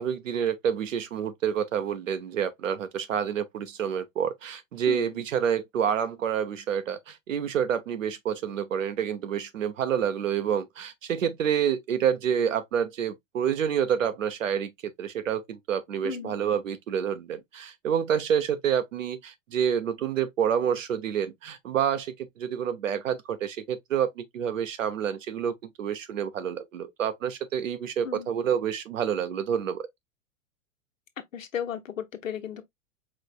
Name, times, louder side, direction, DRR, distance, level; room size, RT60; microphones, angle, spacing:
voice 1, 0.0-29.8, right 8 dB, 75° right, 0.9 m, -28 dB
voice 2, 4.9-5.2 16.0-16.3 28.0-28.3 31.3-32.6, left 8 dB, 80° left, 1.0 m, -35 dB
4.9 x 3.4 x 2.4 m
figure-of-eight pair, 95°, 39 cm